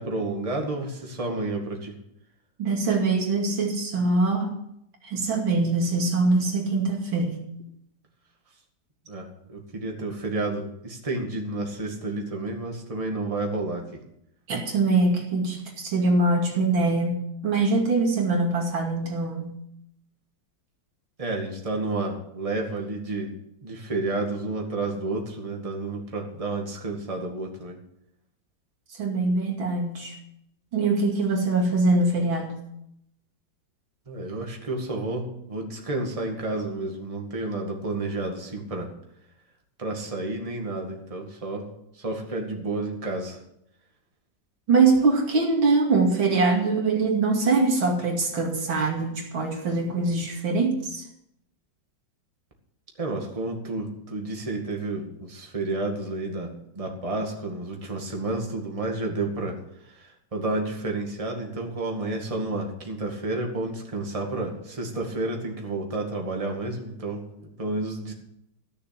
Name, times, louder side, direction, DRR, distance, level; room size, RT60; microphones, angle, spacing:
voice 1, 0.0-2.0 9.1-14.0 21.2-27.8 34.1-38.9 39.8-41.7 41.9-43.4 53.0-68.1, right 2 dB, 15° right, 1 dB, 2.0 m, -31 dB
voice 2, 2.6-4.5 5.0-7.5 14.5-19.6 29.0-30.2 30.7-32.6 44.7-51.1, right 3 dB, 90° right, 0 dB, 3.2 m, -23 dB
15.0 x 6.8 x 8.8 m, 0.78 s
omnidirectional pair, 2.1 m